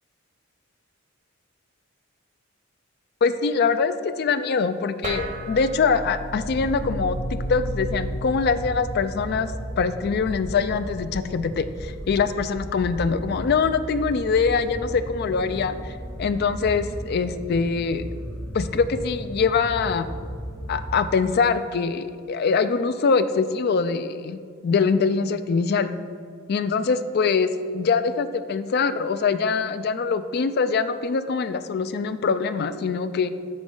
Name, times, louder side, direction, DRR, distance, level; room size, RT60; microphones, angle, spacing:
voice 1, 3.2-7.2 7.5-9.5 9.8-18.0 18.5-20.1 20.7-25.9 26.5-33.3, left 5 dB, 50° left, 11 dB, 0.3 m, -23 dB
sound 1, 5.0-11.8, right 1 dB, 35° right, 0.8 m, -35 dB
sound 2, 6.1-21.5, equal, 5° left, 1.0 m, -35 dB
8.7 x 5.2 x 3.8 m, 2.3 s
head